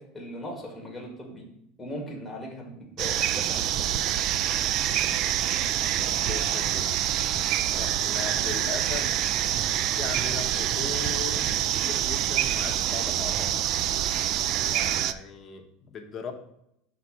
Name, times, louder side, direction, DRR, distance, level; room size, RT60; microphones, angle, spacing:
voice 1, 0.0-1.5 1.8-3.9, equal, 5° left, -1 dB, 1.8 m, -39 dB
sound 1, 3.0-15.1, right 11 dB, 45° right, 0.3 m, -26 dB
voice 2, 6.2-7.4 7.7-9.4 9.9-13.6 14.6-16.3, left 5 dB, 30° left, 3 dB, 1.1 m, -38 dB
5.9 x 4.1 x 5.9 m, 0.78 s
supercardioid pair, 140°, 0 cm